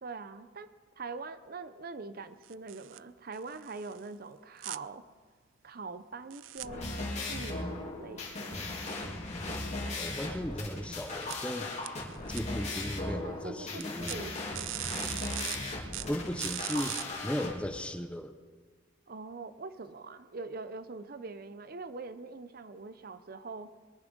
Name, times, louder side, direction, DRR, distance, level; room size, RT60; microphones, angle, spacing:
voice 1, 0.0-0.7 1.0-5.0 5.6-8.7 13.1-15.1 19.1-23.7, right 3 dB, 50° right, 11 dB, 0.7 m, -43 dB
sound 1, 2.4-3.0 3.3-4.0 4.6-4.8 6.3-6.7 11.1-11.3 11.8-12.4 13.8-14.2 14.5-15.6 15.9-17.0, right 17 dB, 80° right, 0.4 m, -39 dB
sound 2, 6.6-17.5, left 2 dB, 35° left, 3.0 m, -37 dB
voice 2, 10.0-11.7 12.3-14.3 16.1-18.4, equal, 5° left, 8 dB, 0.7 m, -36 dB
22.0 x 9.8 x 5.4 m, 1.6 s
head